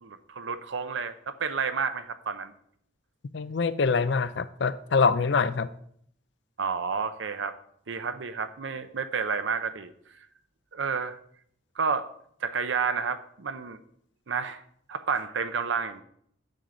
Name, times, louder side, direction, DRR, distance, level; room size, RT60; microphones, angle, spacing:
voice 1, 0.0-2.5 6.6-7.5 7.9-9.9 10.7-11.2 11.8-12.1 12.4-13.8 14.3-14.6 14.9-16.0, right 5 dB, 70° right, 11 dB, 0.7 m, -30 dB
voice 2, 3.3-5.7, left 5 dB, 60° left, 14 dB, 0.4 m, -24 dB
9.1 x 3.8 x 6.9 m, 0.67 s
head